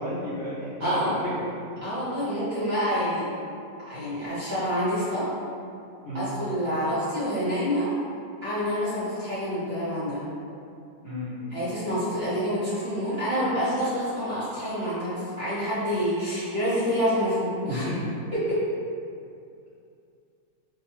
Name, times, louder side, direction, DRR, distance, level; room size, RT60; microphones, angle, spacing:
voice 1, 0.0-1.5 1.7-1.8 6.0-6.3 11.0-11.7 17.7-18.1, left 1 dB, 55° left, -12 dB, 0.6 m, -32 dB
voice 2, 0.8-1.3 1.8-3.2 3.8-5.3 6.1-7.9 8.4-10.3 11.5-17.9 18.3-18.6, equal, 45° right, -12 dB, 1.1 m, -27 dB
2.6 x 2.2 x 2.9 m, 2.5 s
omnidirectional pair, 1.5 m